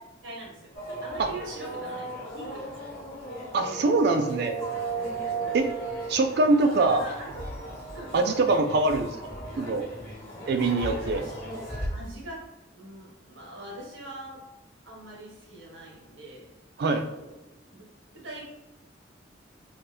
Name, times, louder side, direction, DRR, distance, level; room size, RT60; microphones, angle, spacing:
voice 1, 0.2-0.7 1.0-2.9 3.5-3.9 5.4-5.6 6.6-7.4 7.9-8.3 10.8-12.4 12.8-14.4 14.8-16.5 17.1-17.3 17.7-17.8 18.2-18.4, right 1 dB, 85° right, -2 dB, 1.3 m, -42 dB
sound 1, 0.7-11.9, right 3 dB, 55° left, 1.2 m, -36 dB
voice 2, 3.5-4.5 5.5-5.7 6.1-7.0 8.1-9.1 9.6-9.8 10.5-11.2 16.8-17.0, right 3 dB, 60° right, 7 dB, 0.3 m, -23 dB
3.9 x 2.2 x 3.2 m, 1.0 s
head